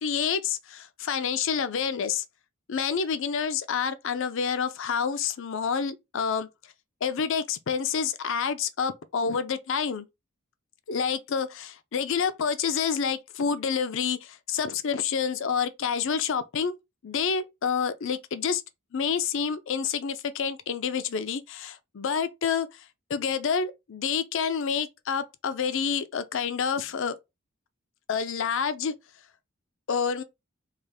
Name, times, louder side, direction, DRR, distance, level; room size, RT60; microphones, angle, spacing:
voice 1, 0.0-2.2 2.7-6.5 7.0-10.1 10.9-16.7 17.0-18.6 18.9-22.8 23.1-27.2 28.1-28.9 29.9-30.2, left 6 dB, 60° left, 0.4 m, -28 dB
3.3 x 2.5 x 3.5 m
head